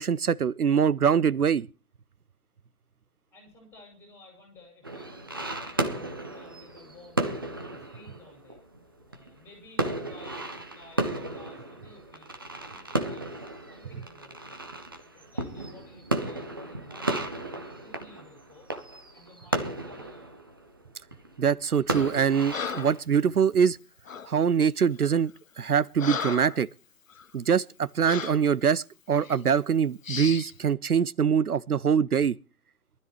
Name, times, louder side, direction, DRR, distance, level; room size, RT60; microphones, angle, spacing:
voice 1, 0.0-1.7 21.4-23.8 24.3-25.3 25.6-26.7 27.3-32.4, right 7 dB, 75° right, 0.6 m, -24 dB
voice 2, 3.3-7.3 7.6-8.6 9.1-12.3 12.7-13.4 13.7-14.6 15.1-18.8 19.1-20.5, left 2 dB, 5° left, 5.7 m, -54 dB
sound 1, 4.8-23.0, right 2 dB, 15° right, 0.7 m, -34 dB
Breathing, 21.9-22.2 22.5-23.0 24.1-24.3 25.0-25.2 25.6-26.6 27.1-27.3 28.0-28.5 29.2-29.4 30.0-30.5, left 6 dB, 60° left, 0.8 m, -35 dB
23.5 x 12.5 x 3.0 m
figure-of-eight pair, 145°, 45 cm